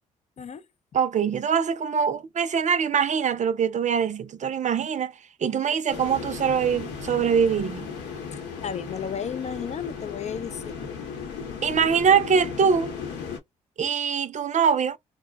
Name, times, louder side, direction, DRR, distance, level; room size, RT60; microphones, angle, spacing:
voice 1, 0.9-5.1 5.4-7.9 11.6-12.9 13.8-15.0, right 7 dB, 40° right, 0.5 m, -23 dB
sound 1, 5.9-13.4, left 6 dB, 75° left, 1.0 m, -36 dB
voice 2, 8.3-10.9, left 7 dB, 40° left, 0.4 m, -34 dB
2.5 x 2.2 x 3.3 m
hypercardioid pair, 50°, 18 cm